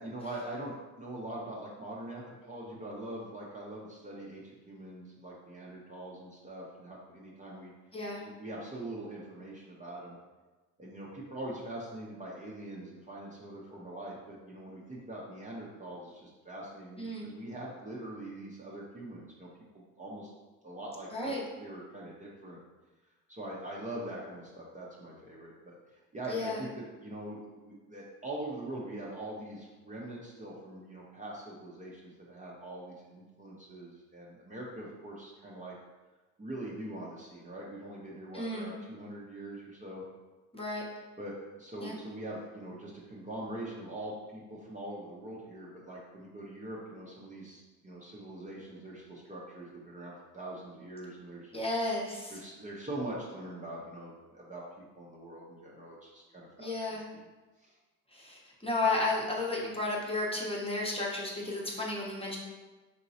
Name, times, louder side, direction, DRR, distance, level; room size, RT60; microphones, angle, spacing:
voice 1, 0.0-7.7 8.2-10.2 10.8-19.5 19.7-20.3 20.6-21.3 21.6-22.6 23.3-26.7 27.0-35.7 36.4-40.0 41.2-51.6 52.3-57.0 57.6-57.7, right 1 dB, 20° right, -5 dB, 0.7 m, -43 dB
voice 2, 17.0-17.3 21.1-21.4 26.3-26.6 38.3-38.7 40.5-40.8 41.8-41.9 51.5-52.4 56.6-57.0 58.1-62.4, left 2 dB, 15° left, -4 dB, 0.9 m, -33 dB
3.7 x 2.9 x 2.7 m, 1.2 s
supercardioid pair, 65°, 39 cm